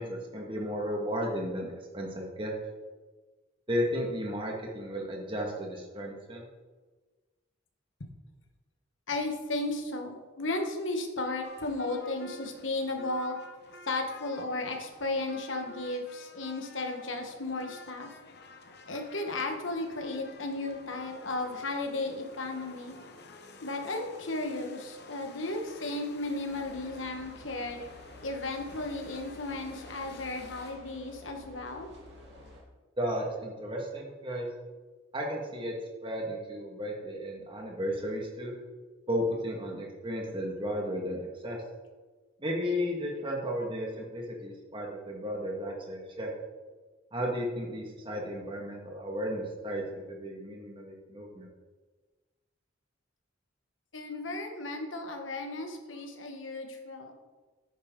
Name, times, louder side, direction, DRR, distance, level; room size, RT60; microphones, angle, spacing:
voice 1, 0.0-2.5 3.7-6.5 33.0-34.5 35.1-35.7 36.0-38.5 39.1-41.6 42.4-46.3 47.1-51.5, equal, 25° right, 0 dB, 1.9 m, -34 dB
voice 2, 9.1-13.4 13.9-18.1 18.9-23.0 23.6-27.8 28.2-31.9 53.9-57.1, left 2 dB, 75° left, 3 dB, 1.6 m, -34 dB
sound 1, 11.4-30.7, left 3 dB, 55° left, 1.0 m, -51 dB
sound 2, 26.4-32.6, left 1 dB, 60° right, 3.0 m, -52 dB
10.0 x 9.8 x 3.9 m, 1.3 s
head